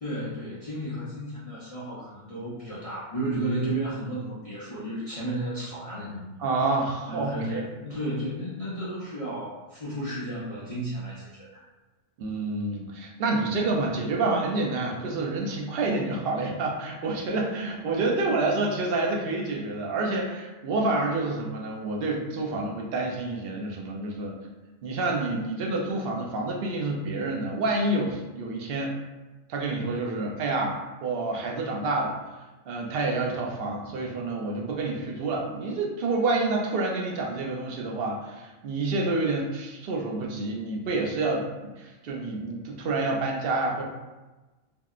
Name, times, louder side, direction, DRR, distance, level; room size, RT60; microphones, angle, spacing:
voice 1, 0.0-6.4 7.0-11.6, right 1 dB, 40° left, -9 dB, 0.5 m, -33 dB
voice 2, 6.4-7.6 12.2-24.3 24.8-28.9 29.5-32.2 32.7-43.8, right 2 dB, 60° right, 0 dB, 0.7 m, -28 dB
3.5 x 2.1 x 2.4 m, 1.2 s
omnidirectional pair, 1.2 m